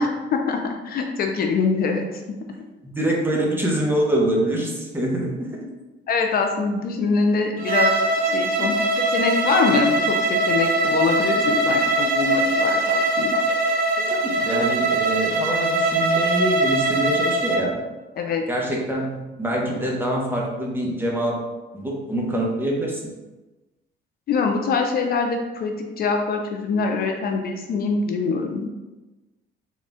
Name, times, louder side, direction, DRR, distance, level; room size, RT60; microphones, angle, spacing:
voice 1, 0.0-2.2 6.1-7.9 8.3-13.4 18.2-18.4 24.3-28.7, left 4 dB, 50° left, 3 dB, 0.5 m, -24 dB
voice 2, 2.8-5.6 8.3-8.7 14.0-17.7 18.5-21.4 21.7-23.0, right 1 dB, 10° right, -2 dB, 0.8 m, -25 dB
Bowed string instrument, 7.6-17.6, right 2 dB, 50° right, 0.5 m, -21 dB
4.1 x 2.3 x 3.6 m, 1.1 s
cardioid pair, 110°, 20 cm